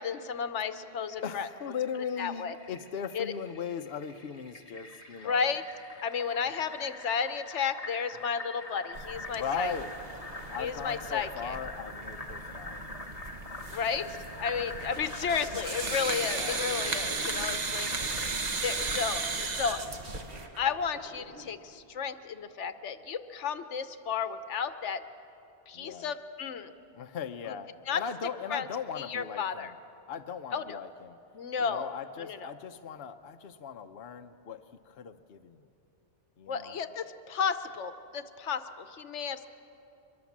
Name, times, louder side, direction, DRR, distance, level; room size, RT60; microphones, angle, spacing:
voice 1, 0.0-1.5 2.2-2.5 3.1-3.3 5.2-5.6 6.0-9.7 10.6-11.6 13.7-17.9 18.6-19.8 20.6-25.0 25.7-26.7 27.9-28.0 28.5-28.7 28.9-29.7 30.5-30.8 31.3-31.9 32.2-32.5 36.5-39.5, left 6 dB, 80° left, 11 dB, 1.2 m, -33 dB
Fill (with liquid), 1.0-19.0, left 2 dB, 30° left, 1.7 m, -44 dB
voice 2, 1.2-5.5 9.3-9.9 10.5-12.8 15.5-16.8 18.0-18.3 25.7-26.1 26.9-29.7 30.1-31.2 31.6-35.7 36.4-36.8, left 7 dB, 60° left, 6 dB, 0.9 m, -38 dB
sound 1, 8.9-20.4, right 4 dB, 40° right, 1.0 m, -36 dB
sound 2, 13.8-21.5, right 2 dB, 65° right, 2.1 m, -47 dB
24.0 x 22.5 x 7.3 m, 2.8 s
omnidirectional pair, 1.2 m